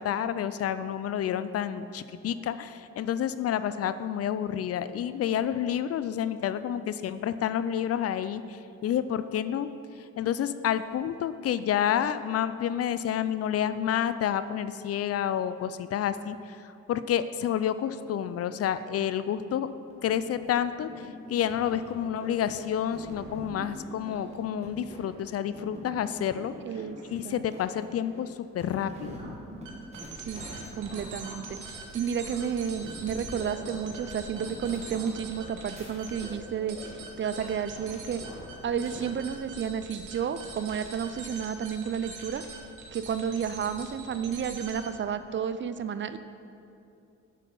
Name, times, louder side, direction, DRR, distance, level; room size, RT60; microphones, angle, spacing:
voice 1, 0.0-9.7 10.0-19.7 20.0-26.5 27.1-29.3, left 9 dB, 55° left, 13 dB, 0.4 m, -29 dB
sound 1, 19.9-39.0, right 1 dB, 20° right, 2.1 m, -45 dB
voice 2, 26.6-27.0 27.2-27.4 30.2-30.5 30.8-31.6 31.9-38.2 38.6-42.4 42.9-46.2, right 7 dB, 40° right, 11 dB, 0.4 m, -31 dB
sound 2, 29.6-45.1, right 3 dB, 80° right, 1.5 m, -43 dB
8.1 x 6.5 x 5.3 m, 2.6 s
cardioid pair, 90°, 30 cm